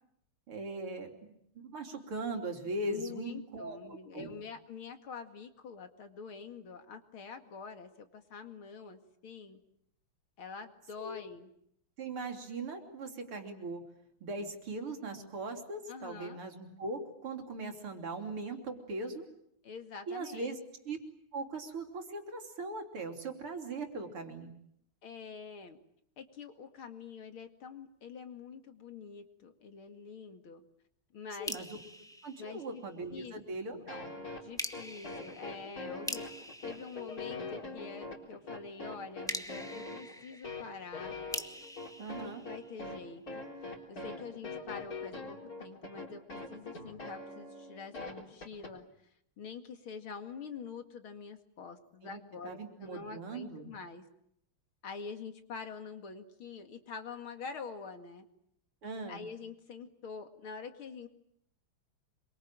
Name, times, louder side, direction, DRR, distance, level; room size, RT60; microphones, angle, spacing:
voice 1, 0.5-3.8 4.1-4.3 11.0-11.2 12.0-13.9 14.2-19.3 20.1-20.6 20.9-21.0 21.3-24.6 31.4-31.8 32.2-34.1 42.0-42.4 52.0-53.7 58.8-59.3, right 2 dB, 80° right, 4 dB, 4.0 m, -40 dB
voice 2, 2.9-9.6 10.4-11.5 15.9-16.4 19.6-20.6 25.0-25.8 26.2-30.6 31.1-31.6 32.4-32.6 33.1-33.3 33.7-33.9 34.4-41.2 42.2-48.8 49.4-54.0 54.8-58.3 59.1-61.1, left 5 dB, 70° left, 6 dB, 3.0 m, -46 dB
Drip drops leaky basement, 31.5-33.2 34.6-37.9 39.3-43.2, equal, ahead, 1.0 m, -44 dB
sound 1, 33.9-48.7, left 3 dB, 40° left, 4.1 m, -43 dB
26.5 x 23.5 x 9.0 m, 0.73 s
omnidirectional pair, 2.4 m